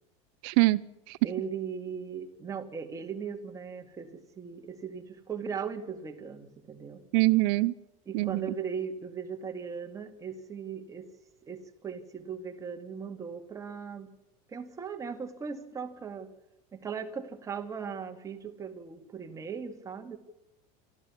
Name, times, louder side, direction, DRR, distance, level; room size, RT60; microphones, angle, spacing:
voice 1, 0.4-1.2 7.1-7.7 8.1-8.5, right 21 dB, 65° right, 18 dB, 0.7 m, -24 dB
voice 2, 1.2-7.0 8.1-11.1 11.4-14.1 14.5-16.3 16.7-20.2, right 6 dB, 20° right, 5 dB, 2.2 m, -38 dB
25.5 x 13.5 x 9.7 m, 0.93 s
supercardioid pair, 150°, 18 cm